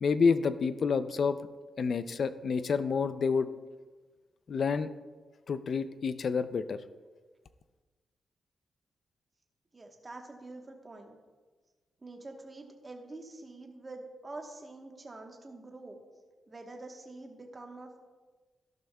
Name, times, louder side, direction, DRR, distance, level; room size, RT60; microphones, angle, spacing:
voice 1, 0.0-1.4 1.8-3.5 4.5-4.9 5.5-6.8, left 5 dB, 50° left, 12 dB, 0.4 m, -28 dB
voice 2, 9.7-11.2 12.0-16.0 16.5-18.0, right 2 dB, 25° right, 2 dB, 1.2 m, -46 dB
13.0 x 11.5 x 2.3 m, 1.3 s
wide cardioid pair, 135°, 0 cm